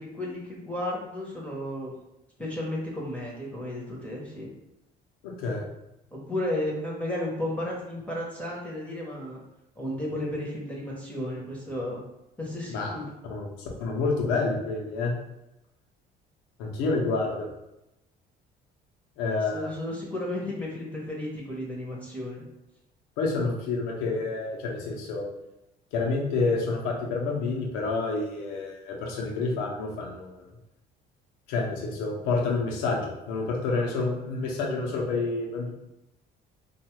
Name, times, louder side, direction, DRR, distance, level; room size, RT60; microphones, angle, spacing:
voice 1, 0.0-1.9 2.4-4.5 6.1-9.4 9.8-12.0 12.4-13.1 19.5-22.4, left 1 dB, 5° left, -4 dB, 0.8 m, -33 dB
voice 2, 5.2-5.6 12.7-12.9 13.2-15.1 16.6-17.5 19.2-19.7 23.2-25.3 25.9-30.5 31.5-35.7, left 3 dB, 85° left, -1 dB, 0.7 m, -28 dB
2.7 x 2.3 x 3.0 m, 0.90 s
supercardioid pair, 70°, 21 cm